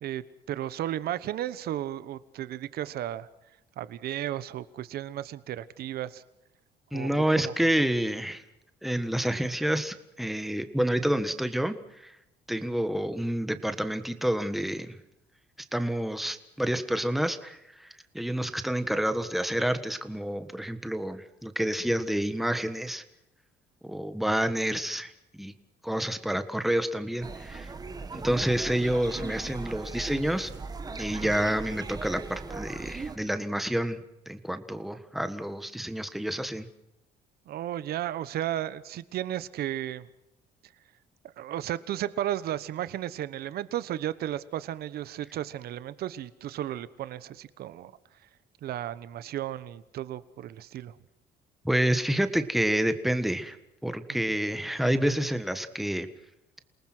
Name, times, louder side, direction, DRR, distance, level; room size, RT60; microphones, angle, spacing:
voice 1, 0.0-3.3 3.8-6.2 6.9-7.5 31.2-31.4 37.5-40.1 41.4-47.9 48.6-50.9, right 12 dB, 65° right, 16 dB, 1.1 m, -34 dB
voice 2, 6.9-8.4 8.8-12.1 12.5-15.0 15.7-17.9 18.1-23.0 23.8-25.5 25.8-27.7 28.1-30.5 31.0-34.0 34.3-36.7 51.6-53.6 53.8-56.1, right 1 dB, ahead, 9 dB, 1.5 m, -28 dB
sound 1, 27.2-33.2, right 4 dB, 20° right, 1.5 m, -39 dB
28.5 x 19.0 x 6.2 m, 0.86 s
cardioid pair, 110°, 17 cm